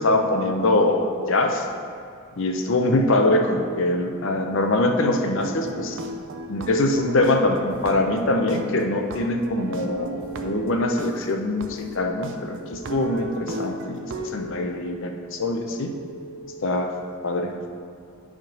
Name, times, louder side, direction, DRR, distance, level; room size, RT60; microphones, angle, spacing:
voice 1, 0.0-1.7 2.4-6.0 6.5-15.9 16.6-16.9 17.2-17.5, left 2 dB, 55° left, 4 dB, 0.7 m, -23 dB
sound 1, 4.0-17.5, left 2 dB, 10° left, 1.3 m, -44 dB
sound 2, 5.4-8.2 8.5-11.1 11.6-11.7 12.2-12.3 12.7-14.3, right 3 dB, 55° right, 0.5 m, -36 dB
10.0 x 3.7 x 5.2 m, 2.4 s
head